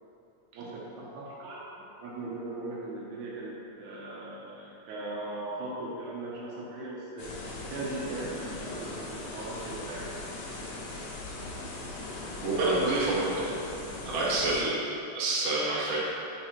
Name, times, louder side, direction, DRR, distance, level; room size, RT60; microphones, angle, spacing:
voice 1, 0.5-7.3 7.7-10.1 14.5-14.6, right 2 dB, 80° right, -5 dB, 2.2 m, -39 dB
sound 1, 7.2-14.6, left 2 dB, 70° left, 1.7 m, -39 dB
voice 2, 12.4-13.7 14.1-14.8 15.1-16.0, right 2 dB, 60° right, -6 dB, 2.0 m, -28 dB
4.9 x 4.8 x 4.3 m, 2.8 s
omnidirectional pair, 3.5 m